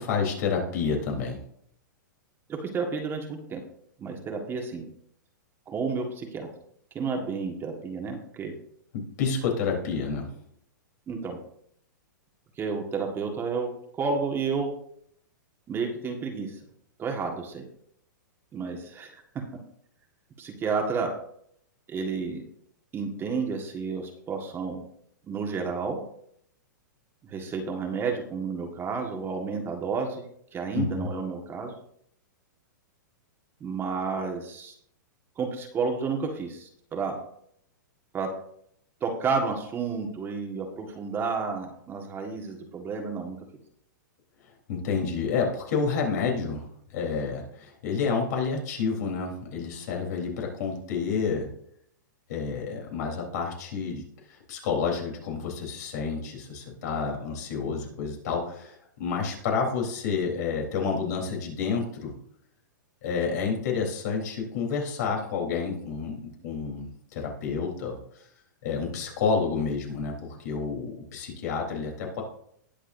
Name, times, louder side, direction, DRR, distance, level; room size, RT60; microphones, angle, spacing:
voice 1, 0.0-1.4 9.2-10.3 30.7-31.1 44.7-51.5 52.3-62.1 63.0-68.0 68.6-72.2, left 5 dB, 60° left, 0 dB, 3.7 m, -29 dB
voice 2, 2.5-3.6 4.0-4.8 5.7-6.5 6.9-8.5 11.1-11.4 12.6-14.7 15.7-16.6 17.0-17.6 18.5-19.2 20.4-21.1 21.9-22.4 22.9-24.8 25.2-26.0 27.2-30.2 30.5-31.7 33.6-34.7 35.4-37.2 38.1-38.3 39.0-43.4, right 5 dB, 20° right, 2 dB, 1.7 m, -31 dB
19.0 x 7.3 x 2.7 m, 0.69 s
hypercardioid pair, 130°, 11 cm